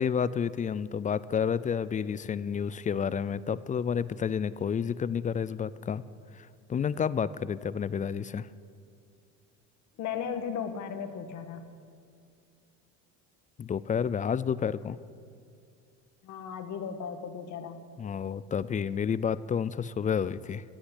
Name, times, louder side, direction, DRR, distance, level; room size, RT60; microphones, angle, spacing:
voice 1, 0.0-6.0 6.3-8.5 13.6-15.0 18.0-20.6, left 7 dB, 25° left, 17 dB, 0.4 m, -30 dB
voice 2, 10.0-11.6 16.2-17.9, left 7 dB, 55° left, 7 dB, 1.7 m, -36 dB
16.0 x 8.8 x 9.9 m, 2.3 s
cardioid pair, 115°, 34 cm